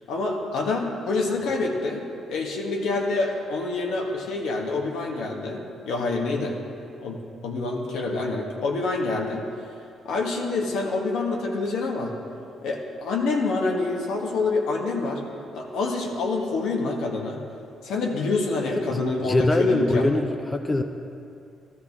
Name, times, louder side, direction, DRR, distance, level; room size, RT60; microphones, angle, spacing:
voice 1, 0.1-6.6 7.0-9.4 10.0-12.1 12.6-15.2 15.5-17.4 17.8-20.1, left 3 dB, 85° left, 0 dB, 1.5 m, -27 dB
voice 2, 18.6-20.8, left 2 dB, 20° left, 6 dB, 0.6 m, -24 dB
13.5 x 12.5 x 3.6 m, 2.6 s
cardioid pair, 90°, 0 cm